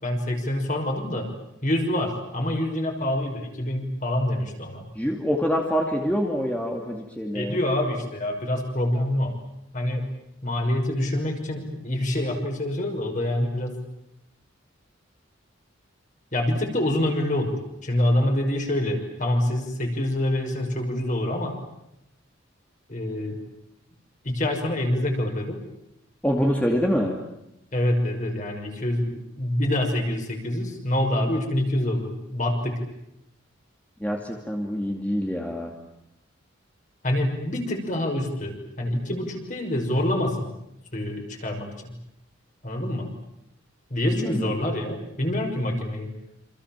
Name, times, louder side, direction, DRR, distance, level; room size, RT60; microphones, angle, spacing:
voice 1, 0.0-1.3 1.6-4.8 7.3-9.4 9.7-10.1 10.4-13.8 16.3-21.6 22.9-23.4 24.2-25.6 27.7-32.8 37.0-40.5 40.9-41.9 42.6-43.1 43.9-46.1, left 1 dB, 40° left, 3 dB, 6.0 m, -26 dB
voice 2, 5.0-7.6 26.2-27.1 34.0-35.7 44.4-44.5, equal, 5° left, 1 dB, 2.5 m, -25 dB
28.0 x 27.0 x 7.5 m, 0.85 s
head